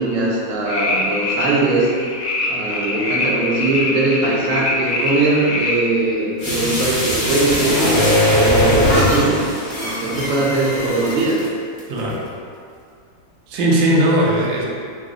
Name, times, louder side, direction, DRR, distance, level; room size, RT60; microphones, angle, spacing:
voice 1, 0.0-1.9 2.5-7.8 8.4-9.4 9.8-11.4, right 2 dB, 70° right, -5 dB, 0.8 m, -20 dB
sound 1, 0.7-5.8, left 2 dB, 75° left, 1.2 m, -23 dB
sound 2, 6.4-11.4 11.8-11.9, left 1 dB, 50° left, 0.8 m, -19 dB
voice 2, 11.9-12.2 13.5-14.6, right 1 dB, 85° right, -2 dB, 1.3 m, -17 dB
3.2 x 2.0 x 3.6 m, 2.3 s
omnidirectional pair, 2.0 m